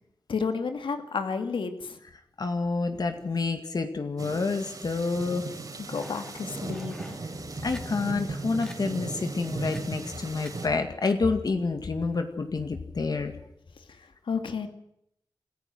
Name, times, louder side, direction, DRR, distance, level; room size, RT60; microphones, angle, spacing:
voice 1, 0.3-2.0 5.9-7.2 13.9-14.7, left 5 dB, 90° left, 7 dB, 2.4 m, -31 dB
voice 2, 2.4-5.5 7.6-13.3, left 4 dB, 55° left, 7 dB, 2.2 m, -28 dB
sound 1, 4.2-10.7, right 3 dB, 50° right, 4.1 m, -37 dB
sound 2, 5.9-7.2 7.7-7.8 8.3-8.4 8.6-8.8 9.6-9.8 10.4-10.5 11.1-11.2, equal, 10° left, 3.0 m, -47 dB
26.5 x 15.0 x 7.9 m, 0.75 s
wide cardioid pair, 125°, 8 cm